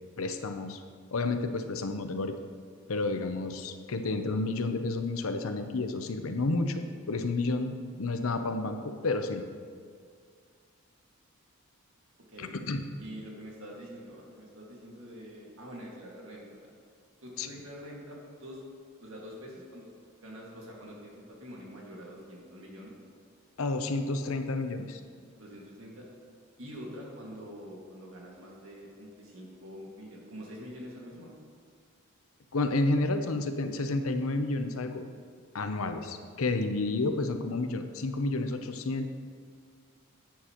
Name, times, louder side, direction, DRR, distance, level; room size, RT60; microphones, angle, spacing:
voice 1, 0.2-0.8 1.1-2.4 2.9-6.8 7.1-9.5 12.4-12.9 17.4-17.5 23.6-25.0 32.5-35.1 35.5-39.1, left 2 dB, 80° left, 7 dB, 0.8 m, -30 dB
voice 2, 13.0-16.7 17.2-18.6 19.0-19.9 20.2-22.9 25.3-26.1 26.6-31.3, equal, 70° right, -2 dB, 2.0 m, -45 dB
11.0 x 9.2 x 3.0 m, 2.1 s
head